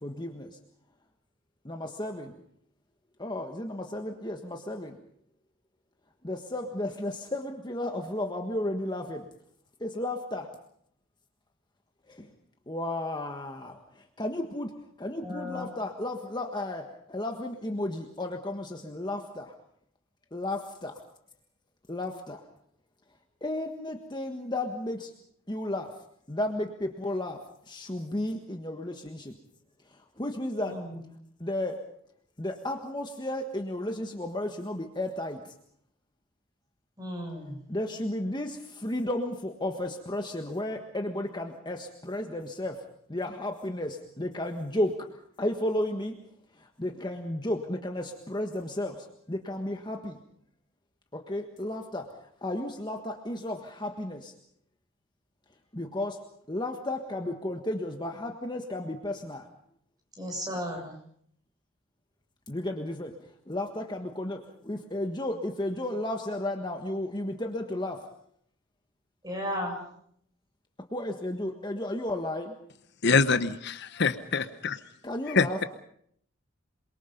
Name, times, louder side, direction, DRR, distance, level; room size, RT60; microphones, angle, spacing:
voice 1, 0.0-0.6 1.6-2.3 3.2-5.0 6.2-9.3 9.8-10.5 12.1-12.3 12.7-14.7 15.0-19.5 20.3-21.0 21.9-22.4 23.4-25.1 25.5-26.0 26.3-29.4 29.9-30.8 31.4-31.8 32.4-35.5 37.7-45.1 45.4-46.1 46.6-50.2 51.1-54.3 55.7-59.5 62.5-63.1 63.5-68.1 70.9-72.6 75.0-75.6, left 1 dB, 20° left, 4 dB, 1.5 m, -33 dB
voice 2, 15.2-15.7 30.6-31.0 37.0-37.6 60.2-60.9 69.2-69.8, equal, 20° right, 2 dB, 7.0 m, -35 dB
voice 3, 73.0-74.8 75.3-75.5, left 4 dB, 55° left, 11 dB, 1.0 m, -24 dB
28.0 x 23.0 x 5.3 m, 0.67 s
head